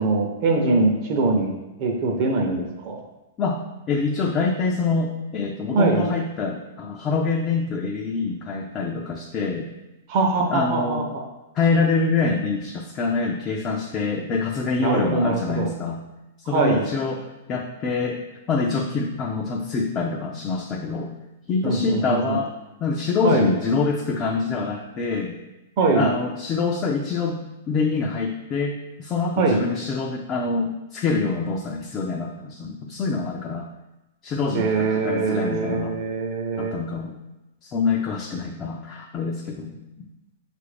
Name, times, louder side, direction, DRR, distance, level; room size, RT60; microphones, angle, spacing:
voice 1, 0.0-1.5 1.8-2.9 5.7-6.0 10.1-11.0 14.8-15.7 16.5-16.8 21.6-22.4 23.2-23.5 25.8-26.1 29.4-29.6 34.5-36.7, right 3 dB, 45° right, 1 dB, 0.7 m, -22 dB
voice 2, 3.9-9.7 10.4-11.1 11.5-16.0 16.4-18.2 18.5-21.1 21.5-22.5 22.8-25.4 25.9-33.7 34.2-36.0 36.6-37.2 37.6-40.1, left 4 dB, 25° left, 1 dB, 0.4 m, -25 dB
5.5 x 2.5 x 3.3 m, 1.0 s
hypercardioid pair, 140°, 0 cm